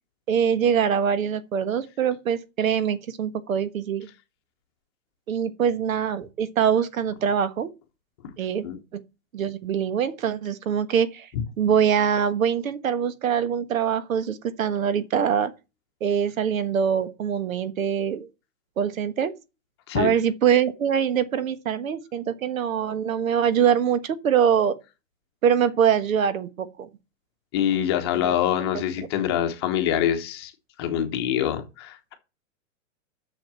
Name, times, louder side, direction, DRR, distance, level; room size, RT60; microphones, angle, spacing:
voice 1, 0.3-4.1 5.3-7.7 8.4-8.6 8.9-9.0 9.3-11.3 11.6-15.5 16.0-18.3 18.8-19.3 19.9-24.8 25.4-26.9 28.1-28.3 28.7-28.8, right 8 dB, 80° right, 1.4 m, -23 dB
voice 2, 27.5-30.5 30.8-32.1, left 10 dB, 20° left, 0.9 m, -25 dB
7.7 x 6.5 x 7.5 m
hypercardioid pair, 180°, 40 cm